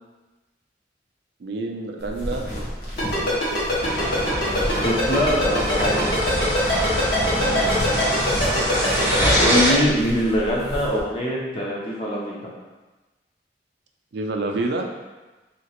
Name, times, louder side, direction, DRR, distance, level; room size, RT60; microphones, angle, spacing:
voice 1, 1.4-2.5 3.0-3.8 7.2-7.7 14.1-14.9, right 3 dB, 70° right, 2 dB, 0.4 m, -29 dB
sound 1, 2.0-11.0, equal, 45° left, 1.0 m, -33 dB
Ringtone, 3.0-9.7, left 1 dB, 70° left, 1.4 m, -23 dB
sound 2, 3.8-9.7, equal, 10° right, 0.6 m, -24 dB
voice 2, 4.8-6.2 8.8-12.4, equal, 30° left, -3 dB, 0.5 m, -23 dB
3.1 x 2.9 x 2.9 m, 1.2 s
head